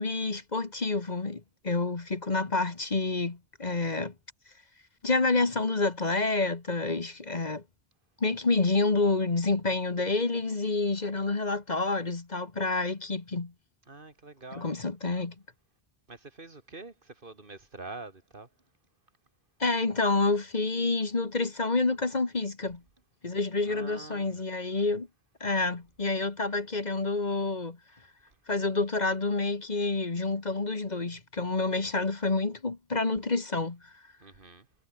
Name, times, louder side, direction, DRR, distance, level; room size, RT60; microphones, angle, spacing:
voice 1, 0.0-4.1 5.0-7.6 8.2-13.5 14.5-15.4 19.6-22.8 23.2-25.1 25.4-27.8 28.5-33.8, left 3 dB, 40° left, 1.7 m, -28 dB
voice 2, 13.9-14.7 16.1-18.5 23.6-24.4 34.2-34.7, right 3 dB, 55° right, 2.5 m, -45 dB
omnidirectional pair, 1.1 m